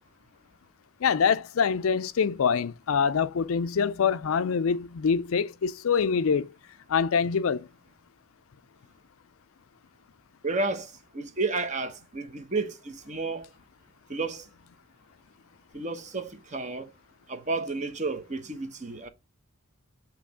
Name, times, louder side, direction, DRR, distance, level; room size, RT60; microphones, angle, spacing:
voice 1, 1.0-6.5 6.9-7.7, left 6 dB, 75° left, 0.4 m, -25 dB
voice 2, 10.4-13.5 14.1-14.5 15.7-16.9 17.3-19.1, right 3 dB, 35° right, 1.0 m, -32 dB
7.6 x 3.0 x 4.9 m
head